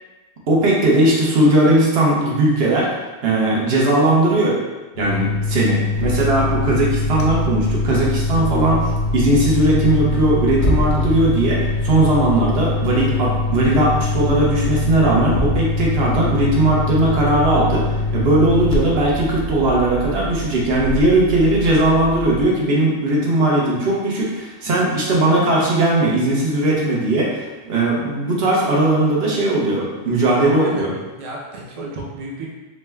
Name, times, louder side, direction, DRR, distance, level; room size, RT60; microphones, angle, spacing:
voice 1, 0.5-2.9 3.2-4.6 5.0-8.8 9.1-17.8 18.1-30.9, right 1 dB, 75° right, -4 dB, 1.0 m, -18 dB
sound 1, 5.0-21.3, left 4 dB, 90° left, 0.8 m, -24 dB
sound 2, 5.9-22.5, right 2 dB, 60° left, 0.6 m, -28 dB
voice 2, 30.2-32.5, right 2 dB, 45° right, -3 dB, 0.5 m, -33 dB
3.1 x 2.2 x 3.2 m, 1.2 s
omnidirectional pair, 1.1 m